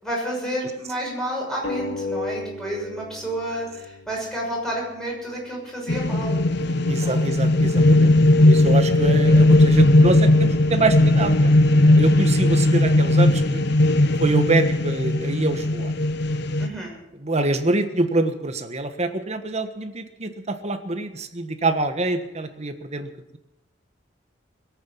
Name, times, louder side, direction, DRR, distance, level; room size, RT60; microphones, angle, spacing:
voice 1, 0.0-6.4 7.0-7.5 16.6-16.9, right 1 dB, 5° left, -3 dB, 6.5 m, -30 dB
sound 1, 1.6-4.8, left 2 dB, 80° left, 2.7 m, -33 dB
sound 2, 5.9-16.7, left 1 dB, 65° left, 0.9 m, -17 dB
voice 2, 6.8-8.1 8.4-13.6 14.2-15.9 17.2-23.4, right 2 dB, 35° right, 8 dB, 1.4 m, -25 dB
21.5 x 9.0 x 7.1 m, 0.91 s
head